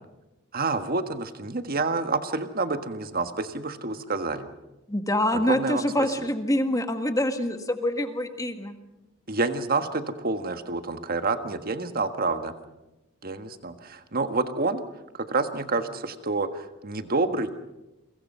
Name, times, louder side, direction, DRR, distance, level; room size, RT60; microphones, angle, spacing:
voice 1, 0.5-4.5 5.3-5.8 9.3-12.5 13.2-14.8 15.1-17.5, right 3 dB, 45° right, 9 dB, 1.6 m, -28 dB
voice 2, 4.9-8.8, left 1 dB, 15° left, 7 dB, 1.7 m, -26 dB
29.0 x 24.0 x 5.6 m, 0.99 s
head